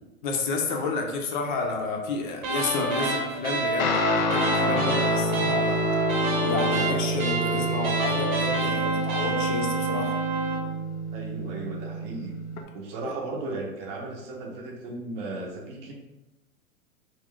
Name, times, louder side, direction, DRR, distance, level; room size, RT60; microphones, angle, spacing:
voice 1, 0.2-5.8 6.4-10.2 13.0-13.1, left 4 dB, 40° left, 2 dB, 0.4 m, -31 dB
sound 1, 2.4-10.7, right 2 dB, 75° right, 0.9 m, -28 dB
Guitar, 3.8-12.6, equal, 90° left, 0.5 m, -28 dB
voice 2, 11.1-12.4 12.7-15.9, right 2 dB, 45° right, -1 dB, 0.7 m, -35 dB
2.4 x 2.2 x 3.6 m, 1.0 s
hypercardioid pair, 125°, 42 cm